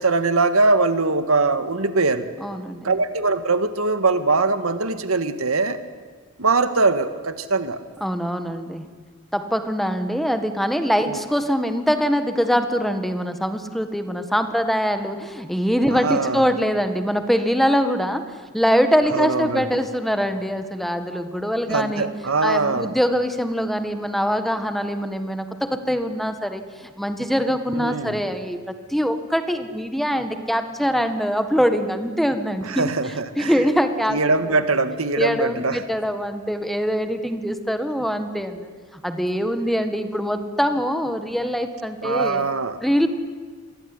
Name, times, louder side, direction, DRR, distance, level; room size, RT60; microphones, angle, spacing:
voice 1, 0.0-2.3 2.8-5.8 6.4-7.8 11.1-11.2 15.9-16.5 19.1-19.7 21.7-22.9 27.8-28.2 32.7-33.5 34.1-35.8 42.0-42.8, right 3 dB, 90° right, 10 dB, 1.9 m, -22 dB
voice 2, 2.4-2.9 8.0-8.9 9.3-22.1 22.4-32.9 33.4-34.2 34.5-34.6 35.2-38.7 39.0-42.4 42.8-43.1, equal, ahead, 8 dB, 1.7 m, -23 dB
27.0 x 22.0 x 9.9 m, 1.5 s
head